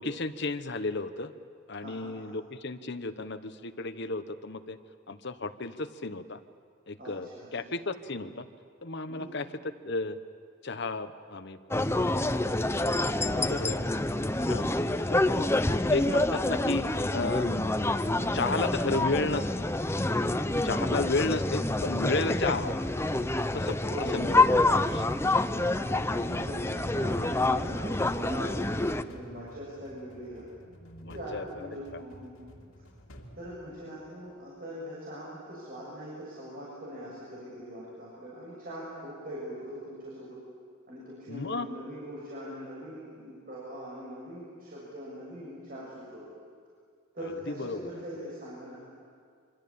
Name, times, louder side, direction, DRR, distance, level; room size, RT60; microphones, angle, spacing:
voice 1, 0.0-1.3 1.7-4.8 5.1-6.4 6.9-8.5 8.8-9.5 9.8-10.2 10.6-11.6 12.1-12.8 13.5-13.8 14.4-14.8 15.1-15.4 15.9-18.0 18.3-19.6 20.6-22.8 23.5-24.4 24.7-25.1 30.8-32.0 41.3-41.7 47.5-48.0, left 3 dB, 55° left, 10 dB, 1.1 m, -33 dB
voice 2, 1.8-2.3 7.0-7.7 9.1-9.4 13.2-13.8 15.6-16.0 17.9-18.3 20.2-21.4 23.8-24.2 25.8-30.5 31.1-32.5 33.3-40.4 40.9-46.2 47.1-48.8, equal, 45° right, -6 dB, 7.0 m, -42 dB
sound 1, 11.7-29.0, left 2 dB, 10° left, 0.7 m, -27 dB
sound 2, 25.1-34.3, equal, 90° left, 2.7 m, -52 dB
26.0 x 26.0 x 8.7 m, 2.2 s
head